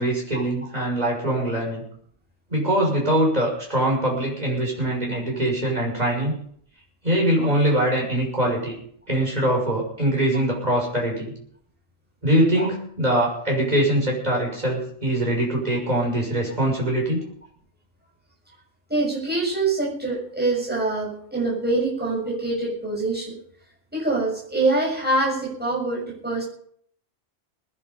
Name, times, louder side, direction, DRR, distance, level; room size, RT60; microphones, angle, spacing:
voice 1, 0.0-1.8 2.5-6.3 7.0-8.7 9.1-11.3 12.2-17.2, right 1 dB, 30° right, -2 dB, 6.7 m, -23 dB
voice 2, 18.9-23.4 23.9-26.4, right 2 dB, 5° right, -4 dB, 6.9 m, -24 dB
20.0 x 11.0 x 5.5 m, 0.62 s
omnidirectional pair, 1.3 m